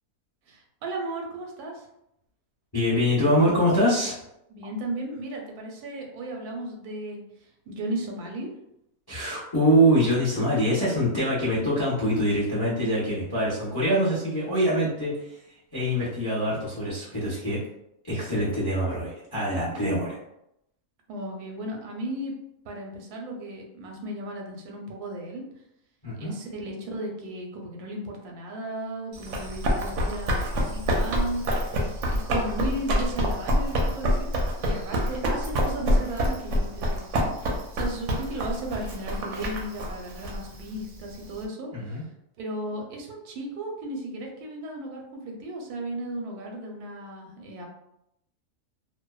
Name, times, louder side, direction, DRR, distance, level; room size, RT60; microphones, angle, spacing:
voice 1, 0.5-1.9 4.5-8.5 21.1-22.3 22.6-25.4 26.2-31.5 32.1-34.3 34.6-42.0 42.4-47.7, right 1 dB, 85° right, 1 dB, 1.1 m, -35 dB
voice 2, 2.7-4.1 9.1-15.1 15.7-17.6 18.1-20.2 26.0-26.3 41.7-42.0, equal, 30° left, -8 dB, 0.4 m, -24 dB
Run, 29.1-41.4, equal, 65° right, 0.8 m, -27 dB
2.6 x 2.1 x 2.2 m, 0.80 s
omnidirectional pair, 1.6 m